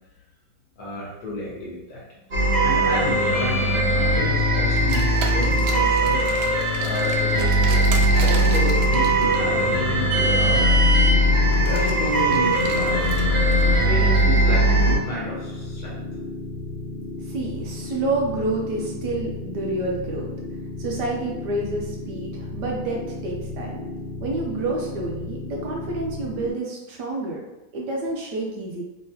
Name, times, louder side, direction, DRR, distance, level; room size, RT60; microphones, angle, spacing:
voice 1, 0.8-2.2 2.6-6.2 6.8-10.8 11.6-13.4 13.8-16.0, left 1 dB, 60° left, -4 dB, 1.3 m, -31 dB
sound 1, 2.3-15.0, right 1 dB, 40° right, 0.7 m, -20 dB
Car, 4.7-14.2, right 3 dB, 85° right, 1.3 m, -31 dB
sound 2, 7.9-26.5, left 2 dB, 80° left, 1.4 m, -34 dB
voice 2, 17.3-20.3 20.8-23.8 24.2-27.4 27.7-28.8, right 2 dB, 70° right, -1 dB, 1.1 m, -28 dB
3.6 x 3.4 x 2.7 m, 1.0 s
omnidirectional pair, 2.1 m